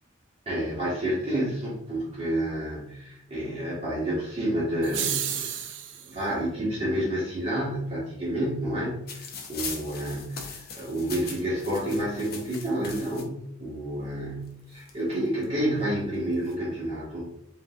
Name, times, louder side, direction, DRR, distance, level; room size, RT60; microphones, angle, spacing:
voice 1, 0.4-5.7 6.0-17.3, right 1 dB, 30° right, -8 dB, 1.4 m, -29 dB
sound 1, 4.8-6.2, right 9 dB, 70° right, 0.4 m, -31 dB
sound 2, 9.1-13.2 14.1-14.2 14.5-15.4 16.2-16.5, left 5 dB, 55° left, 0.7 m, -40 dB
4.9 x 3.0 x 2.4 m, 0.78 s
head